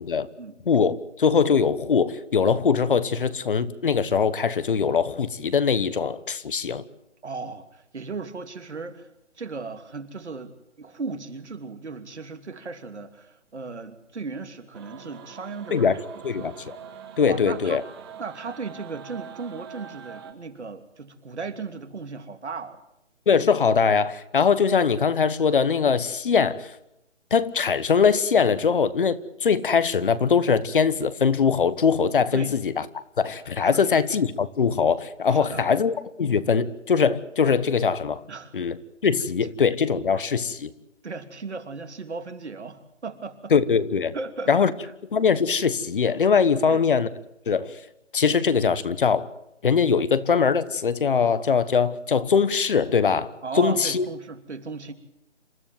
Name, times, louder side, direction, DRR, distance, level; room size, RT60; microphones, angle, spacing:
voice 1, 0.6-6.8 15.7-15.9 16.2-16.8 17.2-17.8 23.3-26.7 27.3-32.8 33.2-38.2 38.5-38.8 39.0-40.7 43.5-44.1 44.5-44.7 45.1-47.1 47.5-47.7 48.1-49.3 49.6-53.3 53.6-54.1, left 6 dB, 45° left, 1.3 m, -22 dB
voice 2, 7.2-9.1 9.4-16.5 17.3-17.8 18.2-22.8 32.3-32.6 33.6-34.0 35.3-35.6 38.3-38.5 41.0-43.5 44.1-44.7 46.7-46.8 53.4-54.9, right 4 dB, 65° right, 2.9 m, -36 dB
sound 1, 14.7-20.3, right 8 dB, 20° right, 1.9 m, -43 dB
28.0 x 14.0 x 9.2 m
figure-of-eight pair, 155°, 36 cm